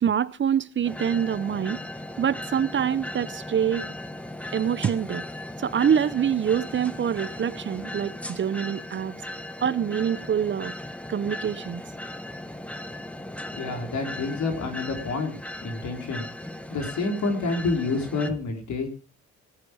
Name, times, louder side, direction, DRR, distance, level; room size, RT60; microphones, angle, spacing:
voice 1, 0.0-1.8 2.2-3.9 4.5-5.2 5.6-9.1 9.6-10.7 11.1-11.8, right 8 dB, 40° right, 0.7 m, -25 dB
sound 1, 0.8-18.3, left 1 dB, 5° left, 1.3 m, -38 dB
voice 2, 13.5-15.3 15.6-16.2 16.7-18.9, left 3 dB, 70° left, 3.8 m, -28 dB
18.0 x 9.5 x 4.9 m
cardioid pair, 90°, 30 cm